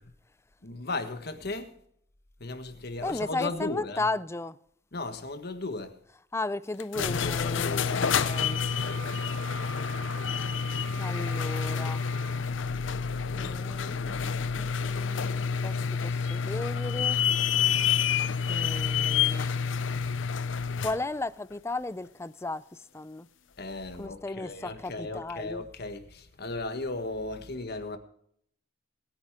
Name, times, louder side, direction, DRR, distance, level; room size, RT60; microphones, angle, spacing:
voice 1, 0.6-1.7 2.4-4.1 4.9-5.9 7.0-8.1 8.8-9.0 23.6-28.0, left 2 dB, 60° left, 1.5 m, -36 dB
voice 2, 3.0-4.6 6.3-8.6 11.0-12.0 13.3-17.2 18.5-19.5 20.8-23.3 24.0-25.6, left 2 dB, 15° left, 0.4 m, -35 dB
sound 1, 6.8-21.0, left 6 dB, 85° left, 0.6 m, -28 dB
Wind instrument woodwind instrument, 8.0-12.5, right 12 dB, 45° right, 2.6 m, -44 dB
22.0 x 9.6 x 3.7 m
head